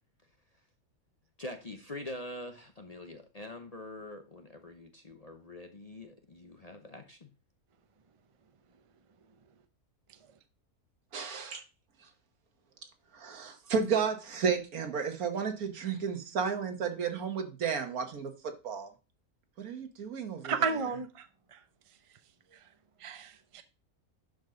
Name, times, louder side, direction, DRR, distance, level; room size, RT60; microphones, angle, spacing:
voice 1, 1.4-7.3, left 1 dB, 35° left, 0.7 m, -44 dB
voice 2, 11.1-11.6 13.1-18.9 19.6-20.7, right 6 dB, 75° right, 1.8 m, -33 dB
voice 3, 20.4-21.3 21.5-21.6 23.0-23.6, right 5 dB, 35° right, 0.6 m, -32 dB
11.5 x 5.2 x 3.8 m
omnidirectional pair, 1.6 m